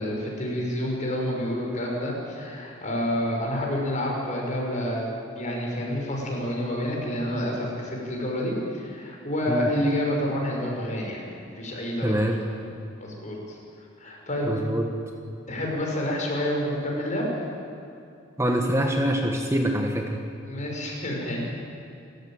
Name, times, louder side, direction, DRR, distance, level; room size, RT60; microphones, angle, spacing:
voice 1, 0.0-5.1 5.3-11.2 11.6-12.5 13.0-13.6 14.0-14.5 15.5-17.2 20.4-21.4, left 1 dB, 35° left, -1 dB, 6.4 m, -28 dB
voice 2, 12.0-12.4 14.4-15.0 18.4-20.2, equal, 15° right, 2 dB, 1.6 m, -25 dB
29.0 x 15.0 x 9.2 m, 2.6 s
head